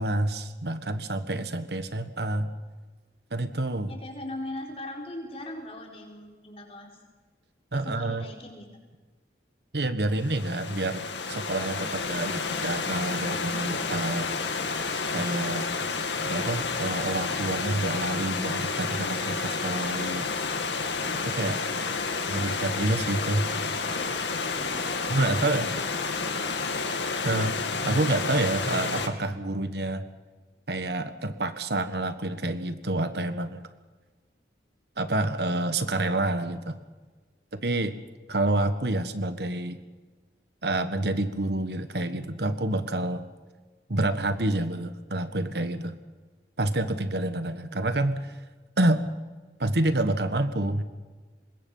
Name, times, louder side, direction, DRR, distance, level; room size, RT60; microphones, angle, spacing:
voice 1, 0.0-2.5 3.3-3.9 7.7-8.3 9.7-14.4 14.9-15.7 16.3-20.3 21.2-21.6 21.9-22.0 22.3-23.5 25.1-25.7 27.2-30.0 30.7-33.6 35.0-36.8 37.5-37.9 38.3-39.8 40.6-43.3 43.9-45.9 46.6-48.4 48.8-49.1 49.6-50.8, right 2 dB, 65° right, 10 dB, 1.5 m, -28 dB
voice 2, 3.9-6.9 7.7-8.7 24.6-26.8, left 1 dB, 35° left, 0 dB, 4.6 m, -40 dB
Stream / Liquid, 10.2-29.1, left 4 dB, 80° left, 2.3 m, -30 dB
25.0 x 21.5 x 5.6 m, 1.3 s
head